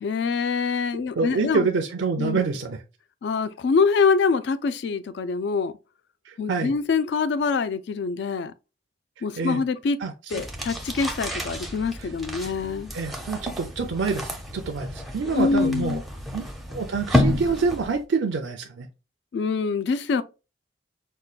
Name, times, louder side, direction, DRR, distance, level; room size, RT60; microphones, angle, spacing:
voice 1, 0.0-1.7 2.2-2.4 3.2-5.7 6.4-8.5 9.2-10.0 10.3-12.9 15.2-16.0 19.3-20.2, left 5 dB, 60° left, 0.3 m, -25 dB
voice 2, 1.1-2.8 6.3-6.7 9.4-9.6 10.0-10.4 12.0-12.1 12.9-16.0 16.3-16.4 16.7-18.9, right 4 dB, 75° right, 0.5 m, -26 dB
sound 1, 10.3-18.0, left 1 dB, ahead, 0.5 m, -30 dB
5.4 x 2.2 x 2.3 m
head